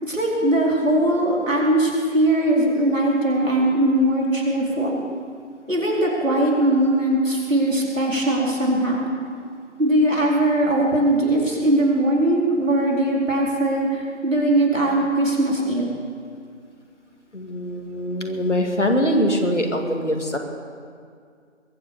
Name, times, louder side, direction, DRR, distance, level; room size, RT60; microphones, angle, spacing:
voice 1, 0.0-5.0 5.7-9.1 9.8-15.9, right 1 dB, 80° right, -2 dB, 4.3 m, -20 dB
voice 2, 17.3-20.4, equal, 65° left, 3 dB, 2.3 m, -23 dB
21.5 x 8.0 x 6.9 m, 2.2 s
figure-of-eight pair, 170°, 38 cm